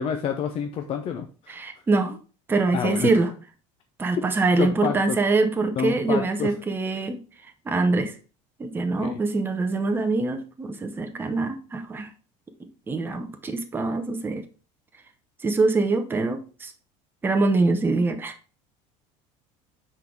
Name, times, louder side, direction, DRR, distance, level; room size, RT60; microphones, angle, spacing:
voice 1, 0.0-1.6 2.1-2.2 2.7-3.1 4.6-5.2 5.8-6.5 9.0-9.2, left 7 dB, 35° left, 5 dB, 0.6 m, -28 dB
voice 2, 1.5-2.2 2.5-3.3 4.0-7.2 7.7-8.1 8.6-12.1 12.9-14.4 15.4-16.7 17.2-18.3, right 3 dB, 15° right, 6 dB, 0.8 m, -24 dB
5.7 x 3.9 x 4.4 m, 0.35 s
cardioid pair, 145°, 16 cm